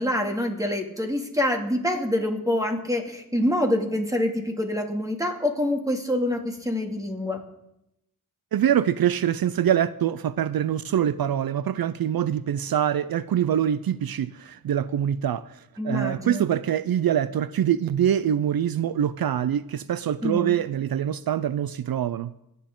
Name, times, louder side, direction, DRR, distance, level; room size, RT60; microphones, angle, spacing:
voice 1, 0.0-7.4 15.8-16.5 20.2-20.6, left 1 dB, 10° right, 2.4 m, -26 dB
voice 2, 8.5-22.3, right 10 dB, 75° right, 0.5 m, -24 dB
25.5 x 9.5 x 3.8 m
wide cardioid pair, 70°, 36 cm